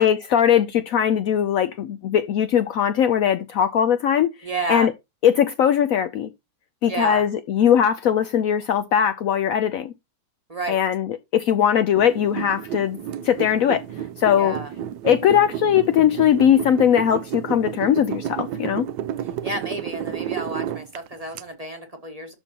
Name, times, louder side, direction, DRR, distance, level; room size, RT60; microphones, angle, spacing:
voice 1, 0.0-4.3 4.7-4.9 5.2-6.3 6.8-9.9 10.7-13.0 13.2-13.8 14.2-14.5 15.0-18.9, left 9 dB, 70° left, 0.9 m, -20 dB
voice 2, 4.4-4.9 6.9-7.2 10.5-10.8 14.3-14.7 19.2-22.4, right 2 dB, 25° right, 1.0 m, -31 dB
sound 1, 12.0-21.4, right 10 dB, 85° right, 1.2 m, -31 dB
11.5 x 5.4 x 2.8 m
omnidirectional pair, 1.8 m